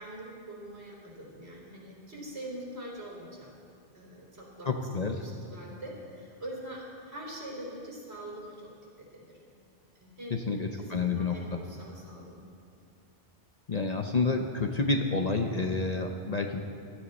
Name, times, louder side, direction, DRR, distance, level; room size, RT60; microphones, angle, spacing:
voice 1, 0.0-3.5 3.9-8.7 9.0-9.4 10.0-10.5 10.8-12.5, right 1 dB, 70° right, -4 dB, 4.0 m, -44 dB
voice 2, 4.6-5.2 10.3-11.4 13.7-16.6, left 3 dB, 40° left, 4 dB, 0.7 m, -29 dB
16.0 x 13.0 x 4.2 m, 2.4 s
omnidirectional pair, 1.1 m